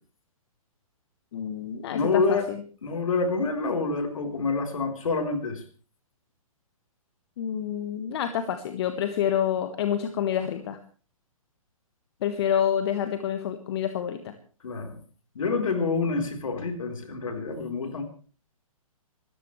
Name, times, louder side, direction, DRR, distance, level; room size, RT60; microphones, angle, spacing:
voice 1, 1.3-2.6 7.4-10.8 12.2-14.3, left 9 dB, 45° left, 8 dB, 1.5 m, -28 dB
voice 2, 1.9-2.5 2.8-5.6 14.6-15.0 15.3-18.0, left 4 dB, 65° left, 6 dB, 3.9 m, -27 dB
26.0 x 14.0 x 3.2 m, 0.39 s
figure-of-eight pair, 125°, 18 cm